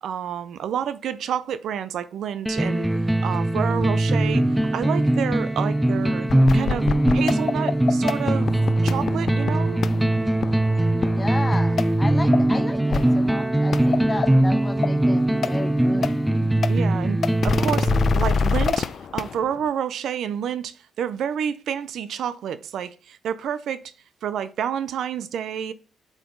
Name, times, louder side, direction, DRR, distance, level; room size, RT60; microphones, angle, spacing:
voice 1, 0.0-2.9 3.2-6.3 6.5-6.9 7.1-9.8 16.7-23.8 24.2-25.7, right 8 dB, 70° right, 0.5 m, -29 dB
sound 1, 2.5-18.4, right 1 dB, 5° right, 0.6 m, -21 dB
sound 2, 6.3-11.4 11.8-11.9 12.3-12.4 12.9-13.3 13.7-14.3 14.8-14.9 15.4-15.5 16.0-16.1 16.6-16.7 17.2-19.6, left 5 dB, 50° left, 0.5 m, -26 dB
voice 2, 11.2-16.1, left 2 dB, 20° left, 1.1 m, -33 dB
7.8 x 4.9 x 3.8 m
cardioid pair, 90°, 0 cm